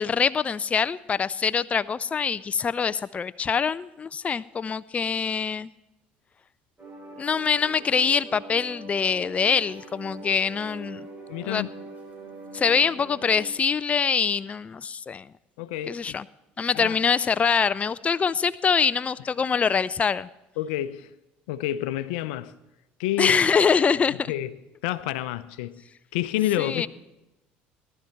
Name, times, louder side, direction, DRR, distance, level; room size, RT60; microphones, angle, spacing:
voice 1, 0.0-5.7 7.2-11.1 11.4-11.7 12.5-15.2 15.9-16.2 16.6-20.3 23.2-24.3 26.6-26.9, left 6 dB, 25° left, 0.4 m, -24 dB
sound 1, 6.8-13.5, right 2 dB, 30° right, 5.4 m, -43 dB
voice 2, 11.3-11.7 15.6-16.2 16.7-17.0 20.6-21.1 21.5-22.6 23.0-23.4 24.3-24.6 24.8-25.8 26.1-26.9, left 13 dB, 85° left, 0.6 m, -29 dB
18.0 x 12.0 x 4.5 m
supercardioid pair, 80°, 5 cm